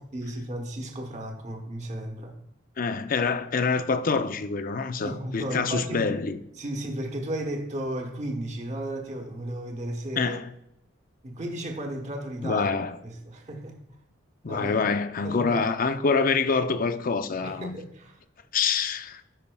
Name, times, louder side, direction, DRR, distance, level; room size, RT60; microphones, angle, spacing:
voice 1, 0.1-2.4 5.0-6.1 6.6-10.4 11.2-12.7 13.0-13.8 14.5-14.8 15.2-15.7 17.4-18.2, right 1 dB, 40° right, 1.1 m, -34 dB
voice 2, 2.8-6.4 10.2-10.5 12.4-13.0 14.4-17.8 18.5-19.2, left 4 dB, 45° left, 0.5 m, -26 dB
14.0 x 5.5 x 2.3 m
head